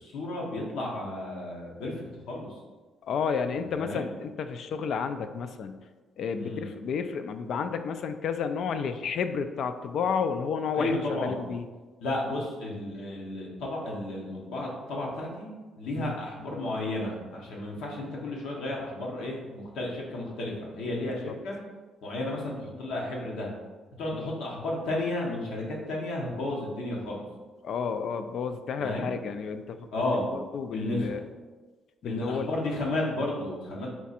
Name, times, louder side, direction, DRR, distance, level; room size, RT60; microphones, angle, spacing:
voice 1, 0.0-2.6 3.8-4.1 6.4-6.7 10.7-11.5 12.0-21.6 22.0-23.5 24.0-27.2 28.8-29.1 29.9-30.3 30.7-31.2 32.0-33.9, left 1 dB, 85° left, -2 dB, 1.0 m, -33 dB
voice 2, 3.1-5.8 6.2-11.7 16.0-16.1 21.2-21.3 24.1-24.3 27.6-29.9 30.2-31.2 32.0-32.5, left 6 dB, 65° left, 9 dB, 0.3 m, -31 dB
4.4 x 2.5 x 4.1 m, 1.3 s
cardioid pair, 90°, 0 cm